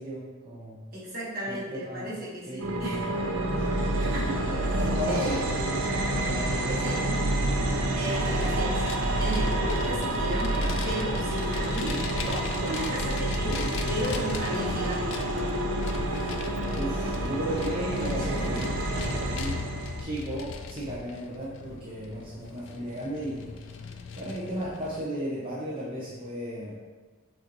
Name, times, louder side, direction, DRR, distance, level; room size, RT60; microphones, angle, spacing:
voice 1, 0.0-0.8 1.5-1.6 1.9-2.1 2.5-3.1 3.5-3.9 4.5-7.0 16.1-16.3 16.7-18.7 19.1-19.6 20.0-23.5 24.2-26.8, equal, 30° right, -8 dB, 0.7 m, -35 dB
voice 2, 0.9-3.1 4.0-4.4 4.6-5.4 6.8-7.0 7.9-8.8 9.2-15.2 18.2-18.6, equal, 50° right, -6 dB, 1.3 m, -34 dB
sound 1, 2.6-20.0, right 1 dB, 85° right, 0.5 m, -28 dB
Vehicle, 8.1-25.0, left 4 dB, 65° left, 0.3 m, -38 dB
6.2 x 2.6 x 3.0 m, 1.4 s
head